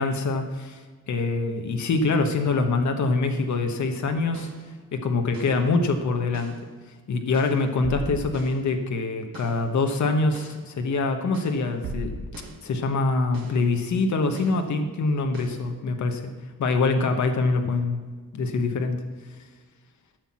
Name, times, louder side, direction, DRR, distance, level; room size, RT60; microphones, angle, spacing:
voice 1, 0.0-4.5 4.9-6.6 7.1-12.1 12.6-16.3 16.6-18.0 18.3-19.0, left 3 dB, 55° left, 5 dB, 1.0 m, -24 dB
sound 1, 4.3-4.7 5.3-5.7 6.3-6.7 7.3-8.7 9.3-9.7 10.3-10.7 11.3-12.7 13.3-13.7 14.3-14.7 15.3-15.7, right 2 dB, 75° right, 2.0 m, -38 dB
13.5 x 5.8 x 7.3 m, 1.4 s
wide cardioid pair, 180°, 34 cm